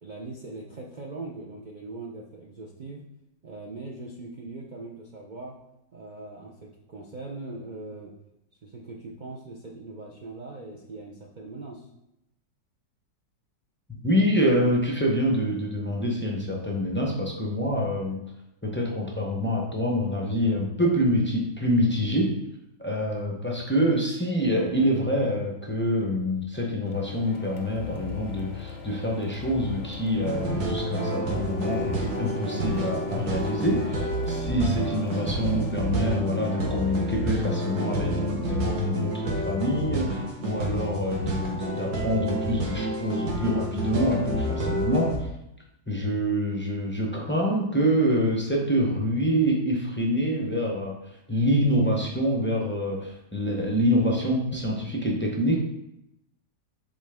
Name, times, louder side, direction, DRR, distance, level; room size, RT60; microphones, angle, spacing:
voice 1, 0.0-3.0 3.4-5.6 5.9-8.1 8.6-11.9, right 2 dB, 80° right, -2 dB, 0.4 m, -40 dB
voice 2, 14.0-18.2 18.6-22.4 22.8-45.3 45.9-51.0 51.3-55.6, equal, 20° left, -2 dB, 0.3 m, -26 dB
Printer, 26.9-35.9, left 3 dB, 90° left, 1.4 m, -44 dB
sound 1, 27.7-31.7, left 10 dB, 70° left, 0.9 m, -41 dB
sound 2, 30.2-45.2, right 1 dB, 60° right, 1.6 m, -29 dB
7.2 x 3.8 x 3.5 m, 0.85 s
omnidirectional pair, 1.9 m